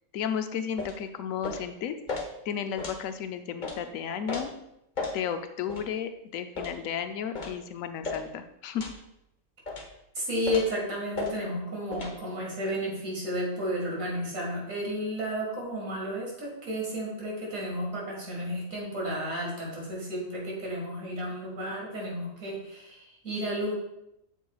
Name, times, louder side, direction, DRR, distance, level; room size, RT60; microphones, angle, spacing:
voice 1, 0.1-2.0 2.4-4.5 5.1-8.9, left 8 dB, 85° left, 8 dB, 1.0 m, -33 dB
sound 1, 0.8-1.0 1.4-1.7 2.1-2.3 2.8-3.0 3.6-3.8 4.3-4.4 5.0-5.2 5.7-5.8 6.5-6.8 7.3-7.6 8.0-8.2 8.8-9.0 9.7-9.9 10.4-10.7 11.1-11.3 11.9-12.1, left 3 dB, 40° left, 1.0 m, -34 dB
voice 2, 10.1-23.7, equal, 80° right, -3 dB, 2.5 m, -32 dB
8.2 x 6.5 x 2.3 m, 0.83 s
omnidirectional pair, 1.4 m